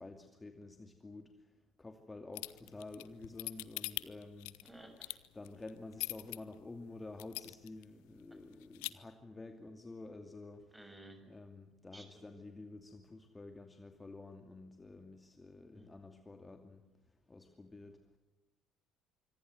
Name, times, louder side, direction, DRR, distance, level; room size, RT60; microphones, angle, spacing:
voice 1, 0.0-4.6 5.3-10.7 11.2-18.2, left 2 dB, 20° left, 6 dB, 2.5 m, -50 dB
sound 1, 2.3-6.4 6.8-6.9 7.2-7.8 8.2-8.3 8.5-8.9, left 29 dB, 65° left, 0.8 m, -41 dB
voice 2, 4.6-5.2 10.7-11.2 11.9-12.3 15.7-15.9, right 1 dB, 10° right, 7 dB, 7.0 m, -55 dB
26.0 x 24.5 x 7.9 m, 1.1 s
figure-of-eight pair, 50°, 0 cm